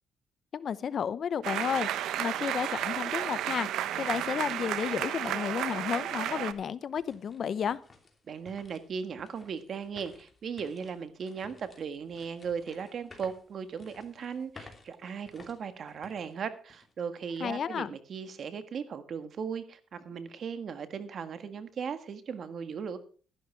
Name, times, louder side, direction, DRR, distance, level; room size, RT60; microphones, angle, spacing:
voice 1, 0.5-7.8 17.4-17.9, left 7 dB, 55° left, 17 dB, 0.7 m, -32 dB
sound 1, 1.4-6.5, right 11 dB, 85° right, 0.9 m, -32 dB
sound 2, 5.5-5.6 6.1-17.0 17.4-17.6 18.2-18.5, left 3 dB, 25° left, 2.9 m, -56 dB
voice 2, 8.3-23.0, right 6 dB, 55° right, 11 dB, 1.6 m, -37 dB
12.5 x 11.5 x 4.6 m, 0.40 s
cardioid pair, 90°, 0 cm